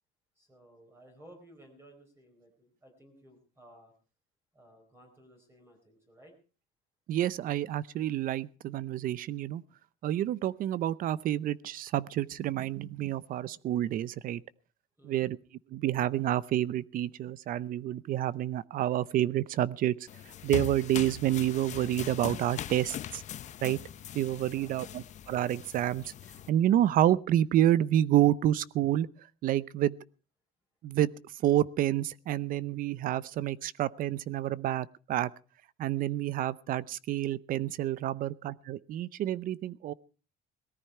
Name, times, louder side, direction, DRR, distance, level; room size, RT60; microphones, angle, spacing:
voice 1, 0.4-3.9 4.5-6.3 15.0-15.3 24.5-24.9, right 1 dB, 15° right, 3 dB, 4.3 m, -57 dB
voice 2, 7.1-9.6 10.0-14.4 15.0-15.4 15.7-19.9 20.4-23.2 23.6-23.8 24.1-26.1 26.5-29.1 29.4-30.0 30.8-31.1 31.4-35.3 35.8-39.9, right 12 dB, 50° right, 20 dB, 0.7 m, -28 dB
sound 1, 20.1-26.5, left 10 dB, 40° left, 0.8 m, -41 dB
18.5 x 14.0 x 4.5 m, 0.37 s
cardioid pair, 155°, 19 cm